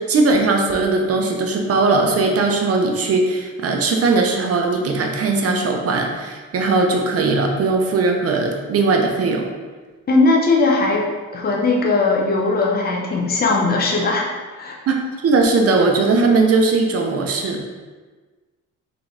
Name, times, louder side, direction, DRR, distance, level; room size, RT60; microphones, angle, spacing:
voice 1, 0.0-9.5 14.9-17.6, right 3 dB, 50° right, 2 dB, 0.8 m, -19 dB
voice 2, 10.1-11.1 11.3-14.8, left 3 dB, 30° left, -1 dB, 0.7 m, -19 dB
3.8 x 3.7 x 3.3 m, 1.4 s
cardioid pair, 100°, 32 cm